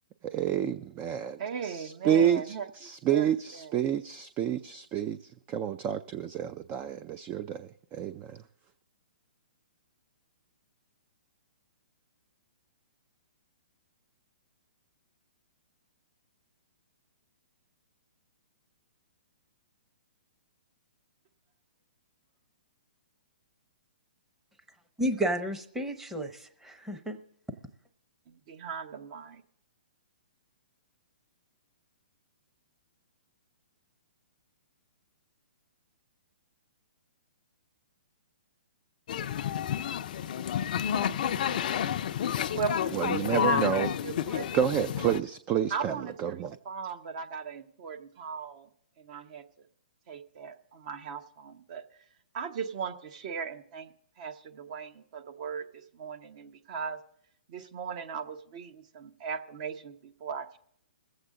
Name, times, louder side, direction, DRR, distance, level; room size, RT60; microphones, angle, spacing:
voice 1, 0.2-5.2 5.5-8.4 42.9-43.9 44.5-46.6, right 9 dB, 25° right, 0.4 m, -29 dB
voice 2, 1.4-2.7 3.1-3.7 28.3-29.4 42.5-44.5 45.7-46.4 46.6-48.7 49.0-49.4 50.1-51.8 52.3-53.9 54.2-57.0 57.5-60.6, right 6 dB, 45° right, 0.9 m, -38 dB
voice 3, 25.0-27.2, right 1 dB, 5° right, 0.8 m, -32 dB
sound 1, 39.1-45.2, left 9 dB, 55° left, 0.4 m, -30 dB
21.5 x 7.9 x 3.7 m
hypercardioid pair, 135°, 5 cm